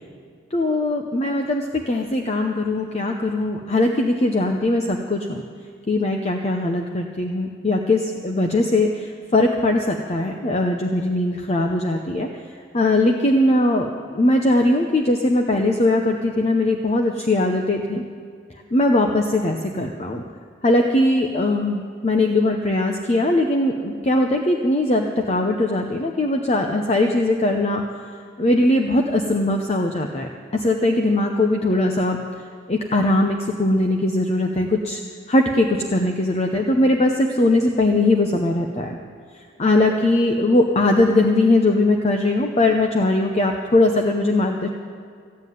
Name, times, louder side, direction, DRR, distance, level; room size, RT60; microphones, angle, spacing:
voice 1, 0.5-5.4 5.9-12.3 12.7-18.0 18.7-20.2 20.6-27.8 28.4-32.2 32.7-35.0 35.3-39.0 39.6-44.7, left 2 dB, 35° left, 3 dB, 0.7 m, -20 dB
15.5 x 7.5 x 9.3 m, 2.3 s
head